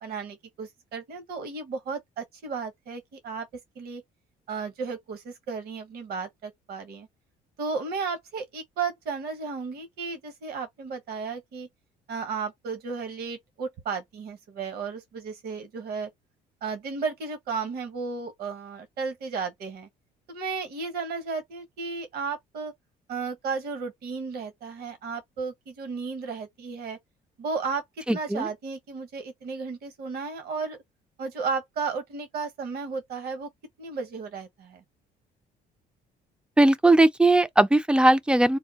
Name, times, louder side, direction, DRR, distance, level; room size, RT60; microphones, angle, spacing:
voice 1, 0.0-3.5 3.8-4.0 4.5-7.1 7.6-11.7 12.1-16.1 16.6-19.9 20.3-22.7 23.1-27.0 27.4-30.8 31.2-33.5 33.8-34.8, right 5 dB, 65° right, 1.1 m, -34 dB
voice 2, 28.1-28.5 36.6-38.6, right 2 dB, 5° right, 0.3 m, -19 dB
3.5 x 2.2 x 2.8 m
cardioid pair, 110°, 17 cm